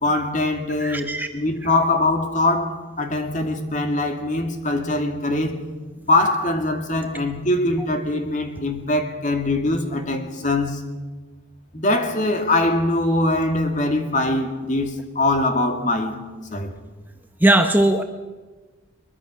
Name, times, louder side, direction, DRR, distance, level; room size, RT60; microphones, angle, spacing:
voice 1, 0.0-5.6 6.1-10.8 11.7-16.2 16.5-16.8, left 2 dB, 35° left, 5 dB, 2.3 m, -22 dB
voice 2, 0.8-1.3 17.4-18.0, right 1 dB, 10° right, 6 dB, 0.8 m, -18 dB
22.5 x 22.0 x 6.3 m, 1.3 s
head